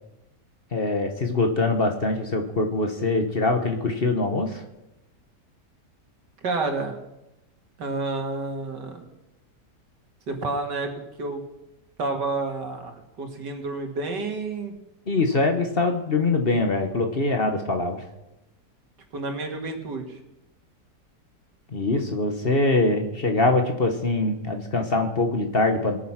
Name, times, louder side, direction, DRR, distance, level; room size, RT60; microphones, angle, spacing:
voice 1, 0.7-4.6 15.1-18.0 21.7-26.0, left 2 dB, 35° left, 4 dB, 1.3 m, -23 dB
voice 2, 6.4-7.0 7.8-9.1 10.3-10.9 11.2-11.4 12.0-14.7 19.1-20.2, right 3 dB, 85° right, 3 dB, 2.6 m, -29 dB
20.0 x 9.3 x 5.9 m, 0.95 s
omnidirectional pair, 1.8 m